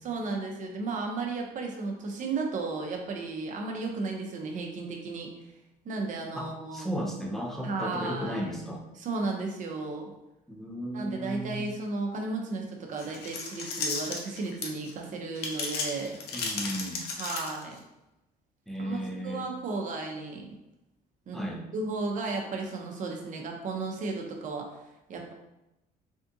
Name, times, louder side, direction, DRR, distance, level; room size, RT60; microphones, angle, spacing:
voice 1, 0.0-5.3 5.8-6.9 7.6-8.5 9.0-10.1 10.9-16.2 17.1-17.8 18.8-20.5 21.3-21.5 21.7-24.7 25.1-25.3, right 3 dB, 50° right, 1 dB, 0.7 m, -34 dB
voice 2, 6.4-8.8 10.5-11.7 16.3-17.0 18.7-19.4 21.3-21.6, equal, ahead, -1 dB, 0.6 m, -35 dB
sound 1, 13.0-14.9 15.3-17.8, left 4 dB, 75° left, 0.6 m, -34 dB
3.5 x 2.4 x 2.6 m, 0.95 s
cardioid pair, 110°, 17 cm